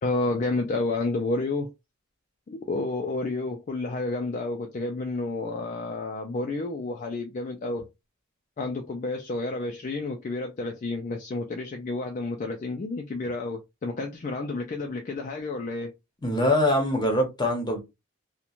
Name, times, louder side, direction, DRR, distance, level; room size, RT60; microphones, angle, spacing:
voice 1, 0.0-1.7 2.5-7.9 8.6-15.9, left 2 dB, 35° left, 0.3 m, -30 dB
voice 2, 16.2-17.8, left 1 dB, 20° left, 0.8 m, -23 dB
2.9 x 2.1 x 2.4 m
head